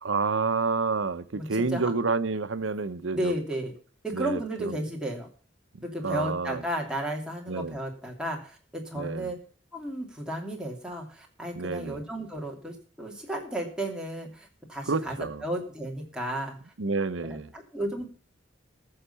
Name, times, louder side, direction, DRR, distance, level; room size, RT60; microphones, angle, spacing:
voice 1, 0.0-3.4 4.1-4.8 5.7-6.6 7.5-7.8 8.9-9.3 11.6-12.0 14.9-15.4 16.8-17.5, right 4 dB, 90° right, 0.8 m, -29 dB
voice 2, 1.3-1.9 3.1-3.7 4.0-5.3 5.8-9.4 9.7-15.2 15.4-16.6 17.2-18.1, right 1 dB, 5° right, 2.7 m, -33 dB
14.5 x 6.6 x 6.8 m
head